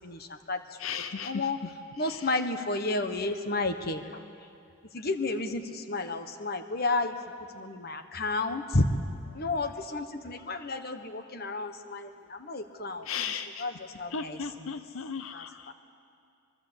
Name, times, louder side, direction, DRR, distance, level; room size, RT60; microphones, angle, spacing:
voice 1, 0.0-0.6 1.2-1.6 2.0-4.2 4.9-7.2 7.5-8.9 9.3-13.0 13.6-14.7 15.3-15.7, left 2 dB, 45° left, 8 dB, 1.3 m, -32 dB
voice 2, 0.8-1.7 2.0-2.3 13.0-13.6 14.1-15.7, left 6 dB, 80° left, 10 dB, 0.8 m, -36 dB
24.5 x 22.0 x 8.1 m, 2.4 s
head